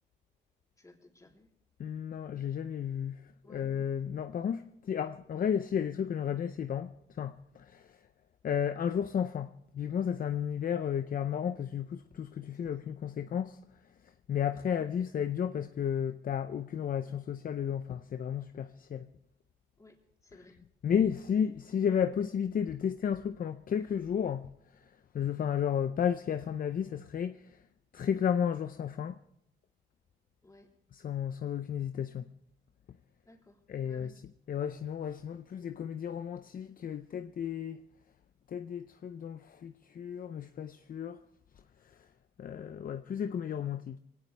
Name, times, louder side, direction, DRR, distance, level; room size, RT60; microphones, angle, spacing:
voice 1, 0.8-1.5 3.4-3.7 12.5-12.6 13.1-13.3 14.6-14.8 19.8-20.6 30.4-30.7 33.2-34.1, left 2 dB, 15° left, 3.6 m, -59 dB
voice 2, 1.8-8.0 8.4-13.6 14.3-19.1 20.3-20.5 20.8-27.6 27.9-29.2 30.9-32.3 33.7-37.8 38.5-41.2 41.8-42.1 42.4-44.0, left 8 dB, 45° left, 0.6 m, -33 dB
21.5 x 17.5 x 3.4 m
cardioid pair, 90°, 20 cm